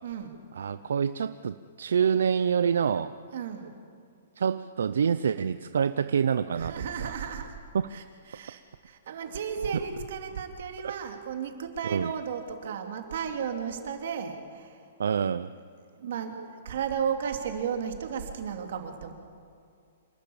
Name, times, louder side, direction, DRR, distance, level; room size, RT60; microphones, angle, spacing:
voice 1, 0.0-0.4 3.3-3.7 6.5-7.6 7.9-14.8 15.9-19.1, right 7 dB, 55° right, 5 dB, 2.7 m, -34 dB
voice 2, 0.6-3.1 4.4-6.7 7.0-7.1 7.7-7.9 11.9-12.1 15.0-15.5, right 7 dB, 80° right, 13 dB, 0.6 m, -26 dB
27.0 x 13.0 x 8.6 m, 2.4 s
hypercardioid pair, 170°, 0 cm